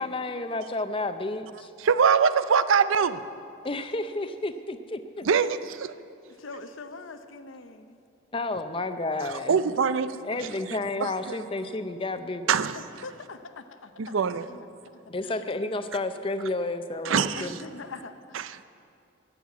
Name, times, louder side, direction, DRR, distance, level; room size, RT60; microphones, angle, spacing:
voice 1, 0.0-1.7 3.6-5.3 8.3-9.7 10.3-12.6 15.1-17.6, left 2 dB, 25° left, 10 dB, 0.5 m, -31 dB
voice 2, 1.8-3.2 5.3-5.9 9.5-10.1 11.0-11.1 12.5-12.8 14.0-14.5 17.1-17.5 18.4-18.6, right 6 dB, 85° right, 14 dB, 0.5 m, -23 dB
voice 3, 6.4-8.0 12.7-14.1 14.5-15.5 17.4-18.4, left 3 dB, 85° left, 9 dB, 0.8 m, -43 dB
12.0 x 7.7 x 8.3 m, 2.6 s
head